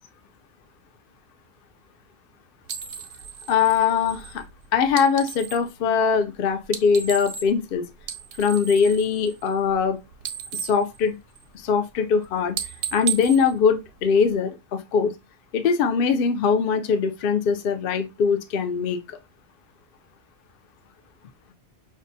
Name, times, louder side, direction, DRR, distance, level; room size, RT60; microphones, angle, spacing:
sound 1, 2.7-5.7 6.6-7.7 8.0-9.9 10.1-11.7 12.0-12.2 12.5-14.4, right 8 dB, 90° right, 1.0 m, -35 dB
voice 1, 3.5-4.4 4.7-7.8 8.4-10.0 10.6-11.2 11.5-12.6 12.9-15.1 15.5-19.2, left 6 dB, 60° left, 0.6 m, -22 dB
5.3 x 2.5 x 2.6 m
omnidirectional pair, 1.3 m